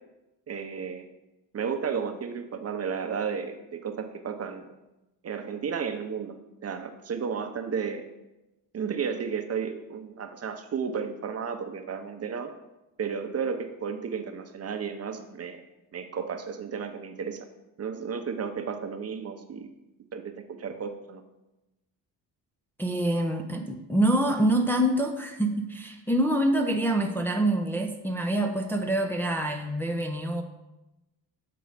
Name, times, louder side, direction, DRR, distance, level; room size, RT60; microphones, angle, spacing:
voice 1, 0.5-1.1 1.5-4.7 5.2-6.4 6.6-8.1 8.7-12.5 13.0-15.6 15.9-17.5 17.8-19.7 20.1-21.2, right 6 dB, 35° right, 7 dB, 0.8 m, -33 dB
voice 2, 22.8-30.4, right 1 dB, 5° left, 2 dB, 0.6 m, -26 dB
8.1 x 3.8 x 5.1 m, 0.98 s
supercardioid pair, 80°, 41 cm